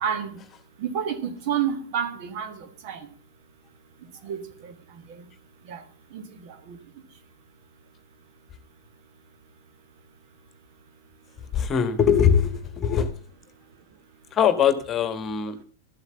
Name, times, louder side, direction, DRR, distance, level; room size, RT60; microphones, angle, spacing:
voice 1, 0.0-0.4 0.8-3.1 4.2-4.7 5.2-5.3 5.7-5.8 6.1-6.3 6.7-6.8, right 8 dB, 45° right, 1.7 m, -29 dB
voice 2, 11.5-13.1 14.3-15.6, left 8 dB, 25° left, 1.5 m, -21 dB
13.5 x 8.0 x 6.9 m
figure-of-eight pair, 90°, 0 cm